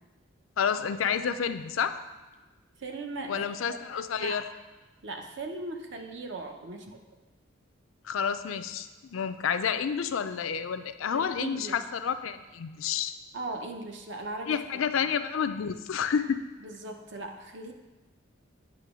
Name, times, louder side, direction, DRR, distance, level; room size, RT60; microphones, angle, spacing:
voice 1, 0.6-2.0 3.3-4.5 8.0-13.1 14.5-16.4, left 7 dB, 80° left, 11 dB, 0.4 m, -29 dB
voice 2, 2.8-3.8 4.2-4.4 5.0-7.0 11.1-11.8 13.3-14.6 16.6-17.7, right 2 dB, 60° right, 3 dB, 0.8 m, -38 dB
9.1 x 3.0 x 6.1 m, 1.2 s
head